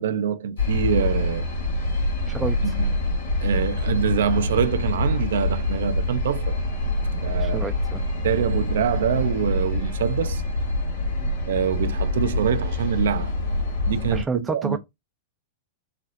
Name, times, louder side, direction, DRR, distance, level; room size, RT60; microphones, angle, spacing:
voice 1, 0.0-1.4 2.6-2.9 3.4-6.6 7.1-7.7 8.2-10.4 11.5-13.3 13.9-14.8, right 8 dB, 80° right, 0.4 m, -25 dB
sound 1, 0.6-14.2, left 2 dB, 90° left, 1.9 m, -25 dB
voice 2, 2.3-2.8 7.4-8.0 11.2-11.3 14.1-14.8, right 4 dB, 15° right, 0.3 m, -30 dB
4.1 x 2.0 x 2.4 m
hypercardioid pair, 120°, 0 cm